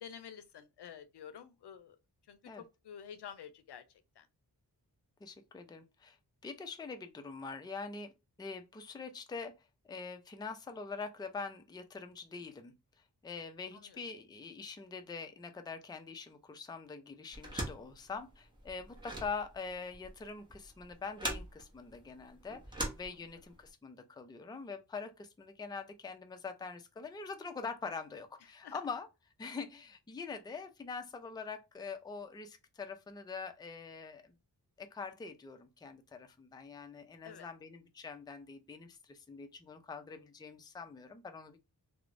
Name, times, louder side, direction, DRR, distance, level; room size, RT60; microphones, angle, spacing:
voice 1, 0.0-2.0 2.3-3.8 4.2-4.3 13.7-14.0 28.6-28.8 37.2-37.5, left 8 dB, 85° left, 0.5 m, -49 dB
voice 2, 5.2-6.2 6.4-8.1 8.4-9.5 9.8-22.6 22.9-29.1 29.4-34.3 34.8-41.6, left 4 dB, 10° left, 0.3 m, -44 dB
sound 1, 17.3-23.7, right 1 dB, 10° right, 0.8 m, -42 dB
3.1 x 2.0 x 2.5 m
wide cardioid pair, 115°, 39 cm